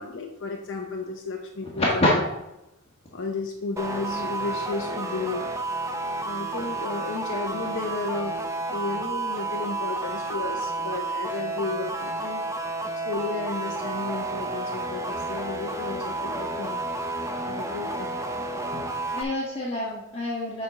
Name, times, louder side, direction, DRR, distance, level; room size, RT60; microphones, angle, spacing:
voice 1, 0.0-2.1 3.1-5.5 6.2-8.4 8.7-12.4 12.9-16.8 17.5-18.2 18.7-18.9, left 3 dB, 60° left, 1 dB, 0.8 m, -33 dB
voice 2, 1.6-2.1 19.1-20.6, left 1 dB, 30° left, -4 dB, 1.4 m, -26 dB
sound 1, 3.8-19.2, right 2 dB, 15° right, 0.6 m, -31 dB
7.8 x 4.6 x 4.8 m, 0.90 s
head